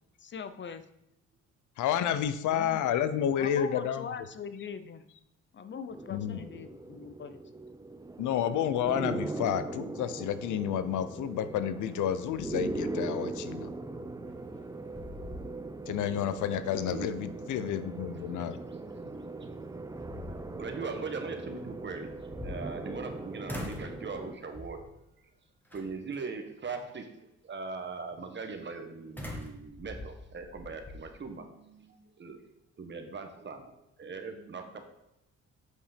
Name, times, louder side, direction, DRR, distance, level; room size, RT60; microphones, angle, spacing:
voice 1, 0.2-0.8 2.4-2.8 3.3-5.0 5.5-7.4, left 6 dB, 40° left, 11 dB, 0.7 m, -41 dB
voice 2, 1.8-4.1 6.1-6.5 8.2-13.7 15.9-18.6, left 9 dB, 80° left, 12 dB, 0.7 m, -30 dB
sound 1, 5.9-24.4, right 2 dB, 10° right, 0.6 m, -40 dB
sound 2, 14.3-14.6 14.9-15.9 16.3-16.4 19.1-19.2 19.8-20.7 22.0-23.1 23.5-24.0 24.5-24.9 25.7-26.2 29.2-31.0, left 1 dB, 5° left, 1.6 m, -43 dB
voice 3, 20.5-24.9 25.7-27.1 27.4-32.4 32.8-33.7 34.0-34.8, right 4 dB, 40° right, 5 dB, 1.2 m, -40 dB
8.0 x 5.4 x 5.1 m, 0.83 s
cardioid pair, 90°, 30 cm